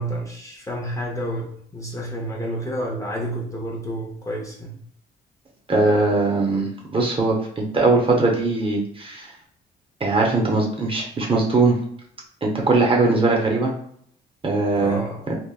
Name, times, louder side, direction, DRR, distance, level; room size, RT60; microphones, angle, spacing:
voice 1, 0.0-4.8 14.7-15.2, right 1 dB, 15° left, -3 dB, 0.6 m, -30 dB
voice 2, 5.7-9.3 10.0-11.8 12.4-13.7 14.4-15.0 15.3-15.4, right 3 dB, 25° right, 0 dB, 0.7 m, -20 dB
3.3 x 2.1 x 2.2 m, 0.65 s
cardioid pair, 90°, 20 cm